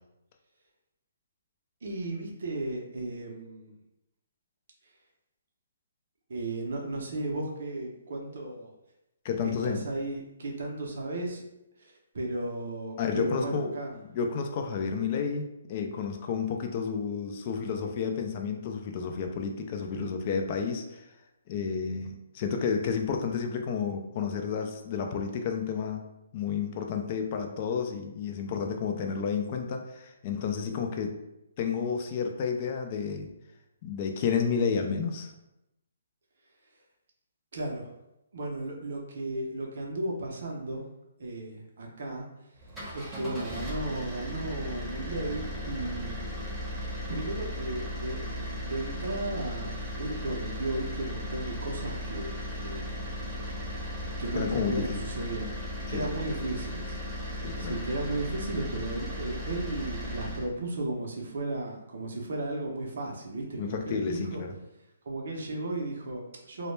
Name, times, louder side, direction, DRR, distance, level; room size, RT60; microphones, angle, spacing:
voice 1, 1.8-3.7 6.3-8.7 9.4-11.4 11.8-13.9 37.5-37.9 38.3-40.8 41.2-42.3 42.9-46.3 47.1-48.2 48.6-53.0 54.2-55.5 55.9-57.0 57.3-64.4 65.0-66.7, right 2 dB, 65° right, -1 dB, 0.5 m, -35 dB
voice 2, 9.2-9.8 13.0-21.1 21.5-26.0 26.3-31.1 31.6-33.3 33.8-35.3 54.3-55.0 55.9-56.1 57.4-57.8 63.6-64.5, left 6 dB, 35° left, 4 dB, 0.3 m, -31 dB
sound 1, 42.6-60.5, left 1 dB, 10° right, 0.7 m, -36 dB
2.1 x 2.0 x 3.1 m, 0.90 s
hypercardioid pair, 150°, 0 cm